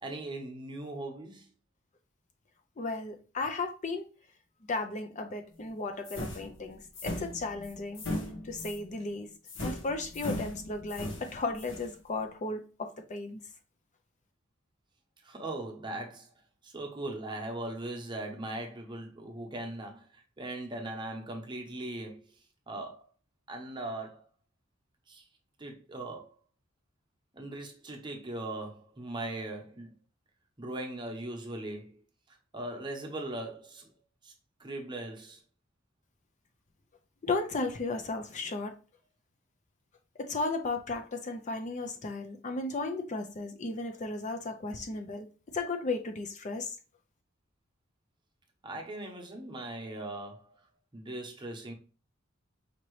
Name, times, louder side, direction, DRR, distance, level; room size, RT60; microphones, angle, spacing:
voice 1, 0.0-1.5 15.2-16.3 16.6-22.2 22.7-23.0 23.5-24.2 25.1-25.3 25.6-26.3 27.3-29.9 30.6-32.0 32.3-33.9 34.2-34.3 34.6-35.4 48.6-50.5 50.9-51.7, right 2 dB, 25° right, 0.9 m, -39 dB
voice 2, 2.8-4.1 4.7-8.0 8.4-9.3 9.6-13.4 37.2-38.8 40.2-45.3 45.5-46.8, left 3 dB, 35° left, 0.5 m, -35 dB
sound 1, 6.0-8.9 9.4-11.9, left 1 dB, 65° left, 1.1 m, -38 dB
5.1 x 2.9 x 3.1 m
head